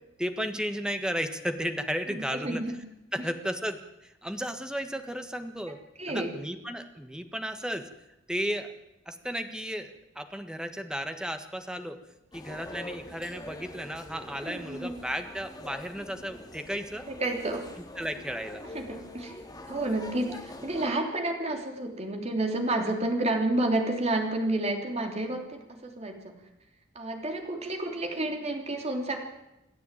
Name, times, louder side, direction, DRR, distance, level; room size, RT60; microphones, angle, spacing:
voice 1, 0.2-2.6 3.1-5.8 6.1-7.9 8.3-8.7 9.1-12.0 12.3-17.1 18.0-18.6 20.3-20.4, equal, 5° right, 7 dB, 1.5 m, -34 dB
voice 2, 2.1-2.7 3.2-3.3 6.0-6.3 14.4-14.9 17.1-17.6 18.7-19.3 19.7-26.3 26.9-29.2, right 2 dB, 35° right, 3 dB, 3.3 m, -30 dB
sound 1, 12.3-20.9, left 1 dB, 20° left, 2.3 m, -44 dB
27.5 x 10.5 x 9.1 m, 0.92 s
head